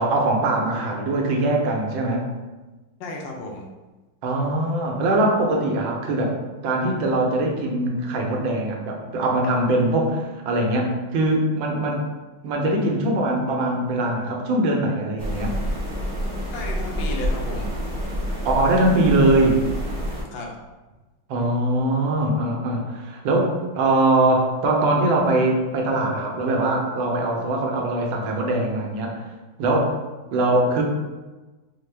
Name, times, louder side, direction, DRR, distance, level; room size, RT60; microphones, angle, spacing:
voice 1, 0.0-2.2 4.2-6.3 6.6-12.0 12.4-15.6 18.4-19.6 21.3-29.2 29.6-30.0 30.3-30.8, right 2 dB, 80° right, 1 dB, 1.4 m, -22 dB
voice 2, 3.0-3.7 16.5-17.7 20.3-20.5, left 2 dB, 75° left, 0 dB, 1.2 m, -33 dB
sound 1, 15.2-20.2, equal, 65° right, 0.4 m, -28 dB
4.2 x 2.2 x 3.2 m, 1.2 s
omnidirectional pair, 2.1 m